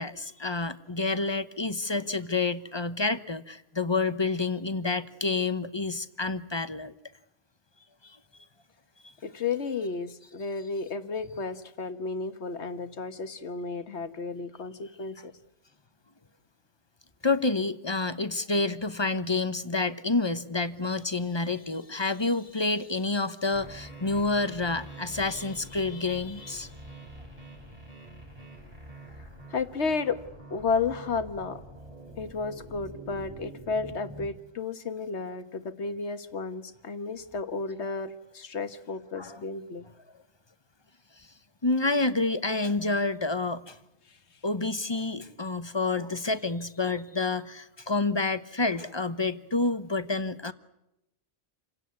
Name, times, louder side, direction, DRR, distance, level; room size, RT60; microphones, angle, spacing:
voice 1, 0.0-6.9 8.0-8.2 9.0-9.1 17.2-26.7 39.2-39.4 41.2-41.3 41.6-43.8 44.4-50.5, left 3 dB, 25° left, 13 dB, 1.0 m, -29 dB
voice 2, 9.2-15.3 29.5-30.2 30.5-31.6 32.2-39.9, left 4 dB, 90° left, 10 dB, 1.7 m, -32 dB
sound 1, 23.5-34.3, right 1 dB, 35° right, 4.9 m, -46 dB
28.5 x 17.0 x 9.5 m, 0.88 s
omnidirectional pair, 1.1 m